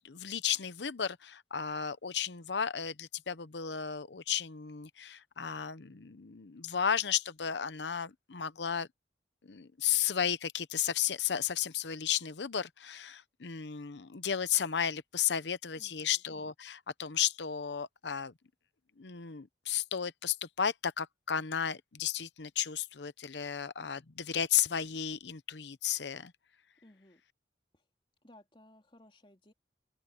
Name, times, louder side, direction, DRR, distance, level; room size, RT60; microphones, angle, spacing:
voice 1, 0.0-8.9 9.4-18.3 19.0-26.3, left 8 dB, 85° left, 0.8 m, -34 dB
voice 2, 15.7-16.2 26.8-27.2 27.7-27.8 28.2-29.5, left 1 dB, 30° left, 2.9 m, -59 dB
head